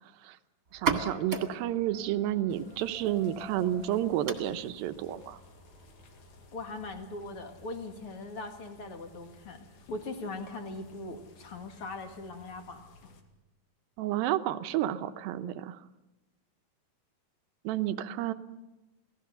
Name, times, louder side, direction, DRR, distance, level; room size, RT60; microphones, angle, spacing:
sound 1, 0.7-8.1, right 5 dB, 30° right, 2.0 m, -39 dB
voice 1, 0.7-5.4 14.0-15.8 17.6-18.3, right 12 dB, 80° right, 10 dB, 2.6 m, -31 dB
sound 2, 2.5-13.2, left 4 dB, 75° left, 3.9 m, -56 dB
voice 2, 6.5-12.9, left 2 dB, 45° left, 5 dB, 2.4 m, -40 dB
28.5 x 18.5 x 6.9 m, 1.0 s
omnidirectional pair, 4.2 m